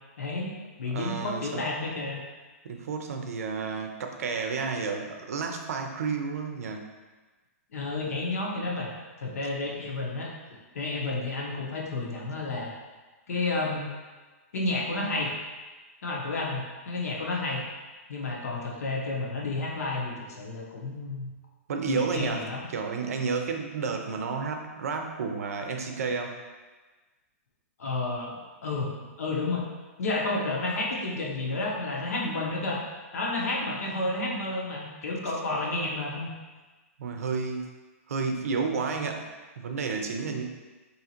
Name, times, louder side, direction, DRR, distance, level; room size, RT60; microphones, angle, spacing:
voice 1, 0.2-0.5 0.8-2.2 7.7-10.3 10.7-12.7 13.3-13.9 14.5-15.3 16.0-17.6 18.1-21.3 21.8-22.7 27.8-28.9 29.2-29.6 30.0-32.8 33.1-36.3, left 2 dB, 80° left, -2 dB, 0.9 m, -31 dB
voice 2, 0.9-1.7 2.6-6.9 21.7-26.4 37.0-37.7 38.1-39.3 39.6-40.4, right 5 dB, 75° right, 4 dB, 0.5 m, -31 dB
3.7 x 2.8 x 2.8 m, 1.3 s
hypercardioid pair, 165°, 8 cm